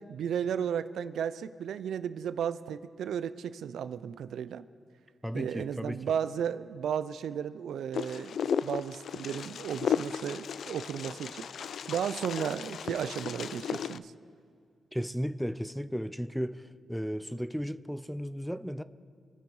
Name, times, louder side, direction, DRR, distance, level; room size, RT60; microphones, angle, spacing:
voice 1, 0.0-4.7 5.3-11.5 11.9-14.1, right 8 dB, 85° right, 0.5 m, -34 dB
voice 2, 5.2-6.0 14.9-18.8, equal, ahead, 0.5 m, -35 dB
Wind, 7.9-14.0, left 7 dB, 70° left, 0.3 m, -35 dB
26.0 x 9.2 x 4.8 m
cardioid pair, 105°, 0 cm